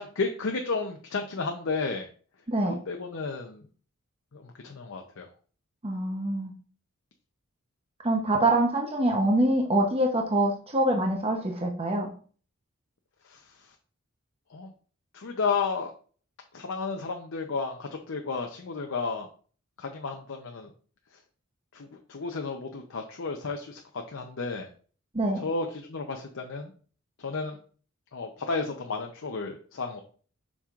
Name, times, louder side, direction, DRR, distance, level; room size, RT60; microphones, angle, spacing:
voice 1, 0.0-2.1 2.7-3.6 4.3-5.3 13.2-13.5 14.5-14.7 15.1-15.9 16.5-19.3 19.8-20.7 21.7-24.7 25.4-26.7 27.2-27.6 28.1-30.0, left 4 dB, 65° left, 3 dB, 0.7 m, -32 dB
voice 2, 2.5-2.8 5.8-6.5 8.0-12.1 25.1-25.4, right 1 dB, 30° right, 1 dB, 0.8 m, -25 dB
7.2 x 5.4 x 2.4 m, 0.42 s
head